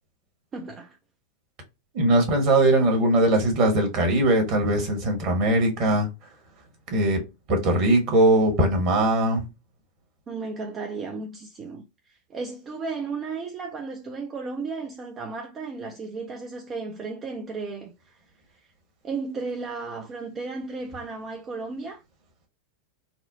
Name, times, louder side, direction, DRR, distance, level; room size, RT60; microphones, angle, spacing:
voice 1, 0.5-1.0 10.3-18.2 18.6-18.7 19.0-22.0, right 4 dB, 25° right, 0.5 m, -34 dB
voice 2, 1.9-6.1 6.9-7.2 7.5-9.5, right 1 dB, 40° right, 1.3 m, -20 dB
4.2 x 2.1 x 2.7 m
figure-of-eight pair, 90°, 0 cm